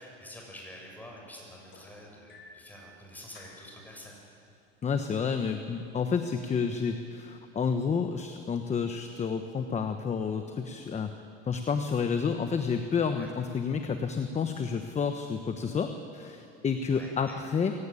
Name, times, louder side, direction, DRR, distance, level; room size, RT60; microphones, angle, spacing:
voice 1, 0.0-4.2 13.2-13.3 16.9-17.4, left 1 dB, 5° left, -1 dB, 6.3 m, -47 dB
sound 1, 1.7-2.7 3.3-3.7 4.8-4.9 5.3-5.6 6.4-6.5, left 4 dB, 40° left, 3.9 m, -53 dB
voice 2, 4.8-11.1 11.4-17.7, left 6 dB, 25° left, 7 dB, 1.1 m, -30 dB
22.5 x 17.0 x 10.0 m, 2.5 s
cardioid pair, 135°, 30 cm